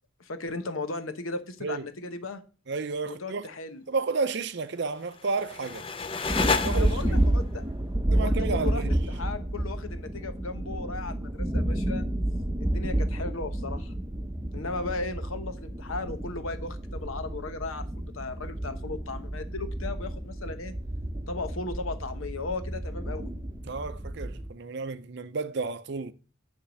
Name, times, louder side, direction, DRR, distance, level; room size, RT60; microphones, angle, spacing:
voice 1, 0.2-2.4 3.1-3.8 6.6-7.6 8.2-12.1 12.6-13.9 14.5-20.7 21.3-23.3, left 3 dB, 85° left, 1.0 m, -36 dB
voice 2, 2.7-3.5 3.9-5.9 6.6-7.0 8.1-8.9 23.6-26.1, right 4 dB, 55° right, 0.6 m, -31 dB
sound 1, 5.0-7.4, left 4 dB, 25° left, 0.5 m, -30 dB
sound 2, 6.3-24.5, right 1 dB, 15° right, 0.7 m, -30 dB
9.8 x 3.6 x 6.2 m
head